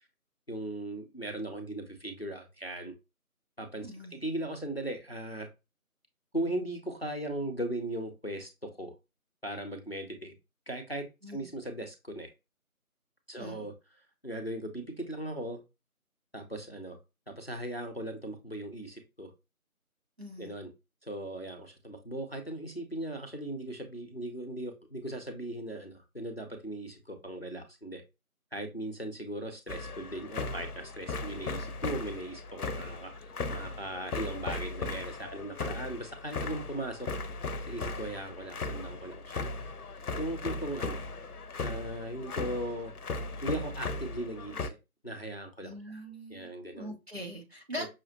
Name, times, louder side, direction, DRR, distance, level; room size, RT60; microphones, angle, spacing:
voice 1, 0.5-2.9 3.6-5.5 6.3-8.9 9.4-10.3 10.7-12.3 13.3-13.7 14.2-15.6 16.3-17.0 17.3-19.3 20.4-20.7 21.0-28.0 28.5-37.1 37.7-39.5 40.2-41.0 41.6-42.9 43.4-44.8 45.0-46.0 46.3-46.9 47.8-47.9, right 1 dB, 45° left, 0.6 m, -38 dB
voice 2, 3.8-4.2 11.2-11.5 13.4-13.7 20.2-20.5 45.6-46.5 46.8-47.9, equal, 45° right, 0.9 m, -42 dB
sound 1, 29.7-44.7, left 3 dB, 85° left, 0.6 m, -37 dB
5.7 x 2.1 x 2.6 m
figure-of-eight pair, 175°, 44 cm